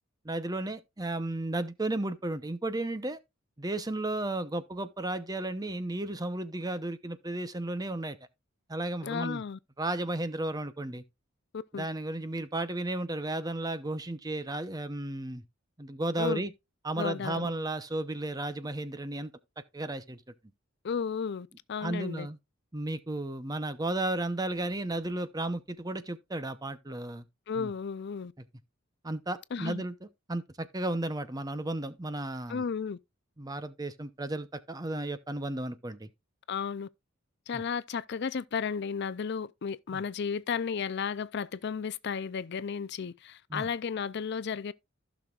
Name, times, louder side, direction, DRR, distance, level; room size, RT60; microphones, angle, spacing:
voice 1, 0.2-3.2 3.6-8.2 8.7-9.4 9.8-11.0 11.7-15.4 15.8-16.5 16.8-19.3 19.7-20.2 21.8-22.4 22.7-27.2 27.6-27.7 29.0-32.6 33.4-36.1 37.5-37.6 39.9-40.0 43.5-43.7, right 2 dB, 20° right, 0.7 m, -34 dB
voice 2, 9.0-9.6 11.7-11.9 16.2-16.4 16.9-17.5 20.8-22.3 27.5-28.3 29.5-29.8 32.5-33.0 36.5-36.9 37.5-44.7, left 6 dB, 55° left, 0.4 m, -33 dB
15.0 x 6.2 x 2.4 m
head